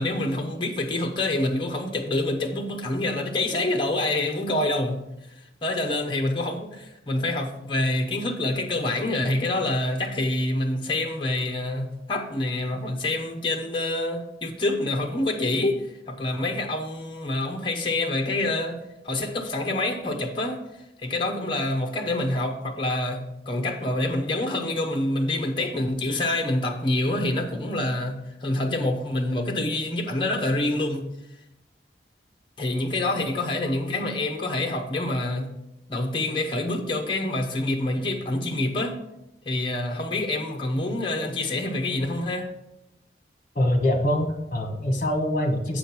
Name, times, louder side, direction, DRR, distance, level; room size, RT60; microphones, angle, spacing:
voice 1, 0.0-5.0 5.6-15.8 16.1-20.6 21.0-31.1 32.6-35.5 35.9-39.0 39.5-42.5, left 2 dB, 30° left, 3 dB, 0.9 m, -26 dB
voice 2, 43.5-45.8, left 1 dB, 45° left, 4 dB, 1.3 m, -24 dB
7.8 x 5.1 x 5.9 m, 0.86 s
head